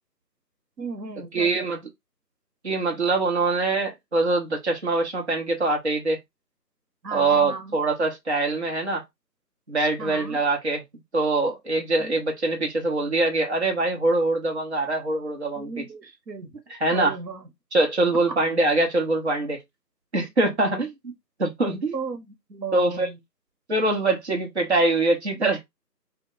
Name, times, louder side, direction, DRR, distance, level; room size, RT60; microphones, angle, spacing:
voice 1, 0.8-1.8 7.0-7.8 10.0-10.4 12.0-12.2 15.5-16.5 16.9-17.5 18.3-18.4 21.9-23.2, right 4 dB, 85° right, 0.9 m, -35 dB
voice 2, 1.3-1.8 2.6-6.2 7.1-9.0 9.7-10.8 11.1-15.9 16.7-17.1 17.7-19.6 20.1-21.1 21.4-21.9 22.7-23.1 23.7-25.6, right 2 dB, 40° right, 0.8 m, -23 dB
2.2 x 2.1 x 3.6 m
figure-of-eight pair, 165°, 50 cm